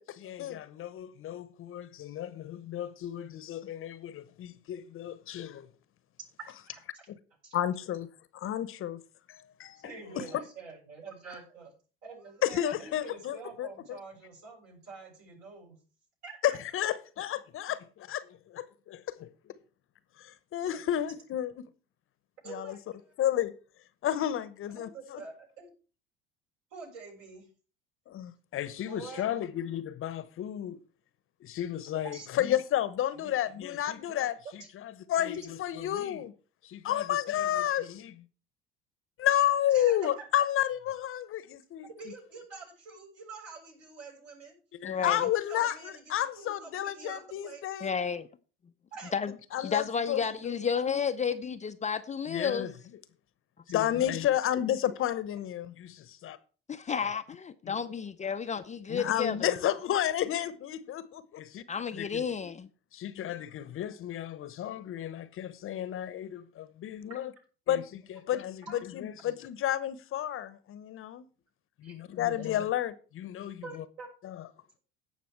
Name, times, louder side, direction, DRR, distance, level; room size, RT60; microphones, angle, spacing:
voice 1, 0.0-5.7 7.5-8.1 8.3-9.0 9.3-9.8 10.2-10.3 12.4-13.7 16.4-19.3 20.2-21.6 22.5-22.8 23.2-23.5 24.0-25.2 28.1-30.8 31.4-36.3 36.6-38.2 39.2-41.9 44.8-47.9 49.5-50.5 52.3-52.7 53.7-56.4 57.7-57.8 58.9-61.6 61.9-62.2 62.9-67.3 67.7-71.3 71.8-73.8 74.2-74.4, left 11 dB, 45° left, 1.0 m, -32 dB
voice 2, 6.4-7.1 7.4-7.5 9.8-11.7 12.0-15.8 16.2-16.6 20.6-20.7 22.4-23.1 24.7-25.7 26.7-27.5 28.9-29.3 31.9-32.3 39.7-40.4 42.0-44.6 44.9-47.6 48.9-49.1 62.4-62.5 68.7-68.8 71.8-72.5 73.6-74.1, right 4 dB, 60° right, 7.3 m, -46 dB
voice 3, 44.8-45.3 47.8-48.3 49.1-49.3 49.6-52.7 56.7-59.6 61.7-62.7, left 6 dB, 25° left, 0.7 m, -32 dB
16.0 x 5.9 x 4.6 m
hypercardioid pair, 70°, 29 cm